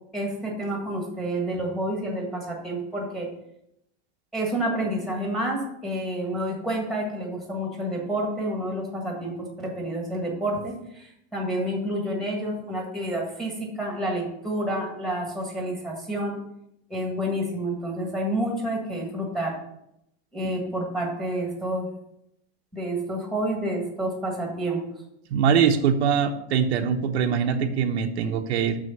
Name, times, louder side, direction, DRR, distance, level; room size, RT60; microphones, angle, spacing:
voice 1, 0.1-3.3 4.3-16.3 16.9-19.5 20.3-21.9 22.7-24.8, right 1 dB, ahead, -1 dB, 1.6 m, -29 dB
voice 2, 25.3-28.8, right 7 dB, 80° right, 5 dB, 1.1 m, -23 dB
6.8 x 6.4 x 6.7 m, 0.79 s
supercardioid pair, 180°, 33 cm